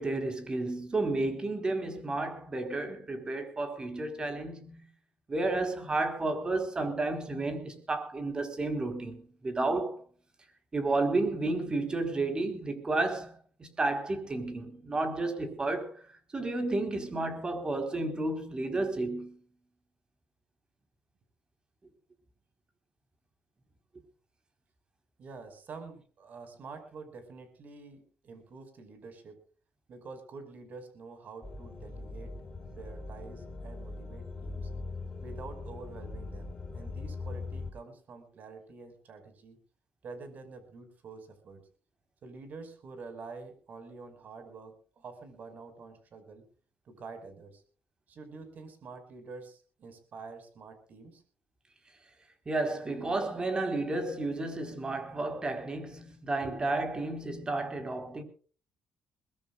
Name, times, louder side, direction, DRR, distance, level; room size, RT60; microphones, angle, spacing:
voice 1, 0.0-4.9 5.3-10.0 10.7-13.3 13.6-16.0 16.3-19.4 52.5-58.2, right 2 dB, 25° right, 4.1 m, -32 dB
voice 2, 25.2-29.4 29.9-32.3 32.7-34.7 35.2-39.6 40.0-41.6 42.2-46.4 46.9-47.6 48.1-51.2 56.4-56.7, right 4 dB, 50° right, 5.5 m, -47 dB
sound 1, 31.4-37.7, left 3 dB, 20° left, 3.8 m, -41 dB
22.5 x 20.5 x 2.4 m
cardioid pair, 110°, 4 cm